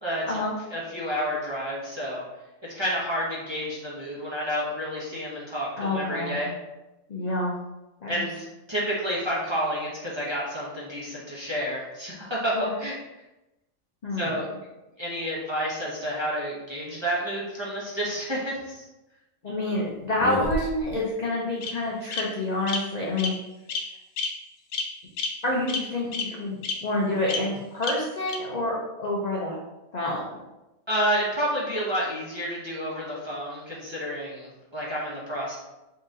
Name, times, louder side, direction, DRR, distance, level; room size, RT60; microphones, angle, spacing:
voice 1, 0.7-2.2 2.6-6.5 8.1-12.5 12.8-13.0 14.1-14.5 15.0-18.8 30.9-35.6, equal, 25° right, -7 dB, 0.8 m, -30 dB
voice 2, 5.7-6.5 7.1-7.5 8.0-8.3 12.5-12.7 14.0-14.4 19.4-23.3 25.4-29.6 29.9-30.4, left 1 dB, 50° left, -4 dB, 0.5 m, -28 dB
Bird vocalization bird call bird song, 20.2-20.9 21.6-21.7 22.1-22.2 22.7-22.8 23.2-23.3 23.7-23.8 24.2-24.3 24.7-24.9 25.2-25.3 25.7-25.8 26.1-26.2 26.6-26.7 27.3-27.4 27.8-27.9 28.3-28.4, left 5 dB, 85° left, 1.1 m, -29 dB
3.8 x 3.8 x 2.7 m, 1.0 s
omnidirectional pair, 1.5 m